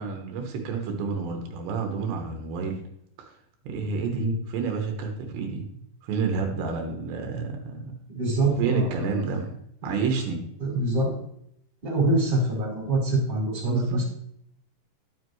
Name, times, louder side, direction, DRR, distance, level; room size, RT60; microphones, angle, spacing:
voice 1, 0.0-2.8 3.2-3.3 3.6-5.6 6.0-7.9 8.4-9.5 9.8-10.4 13.6-14.0, right 5 dB, 80° right, 3 dB, 3.3 m, -29 dB
voice 2, 8.1-9.2 9.9-10.0 10.6-11.2 11.8-14.0, right 2 dB, 15° right, -4 dB, 3.5 m, -25 dB
12.0 x 7.6 x 3.1 m, 0.73 s
omnidirectional pair, 5.0 m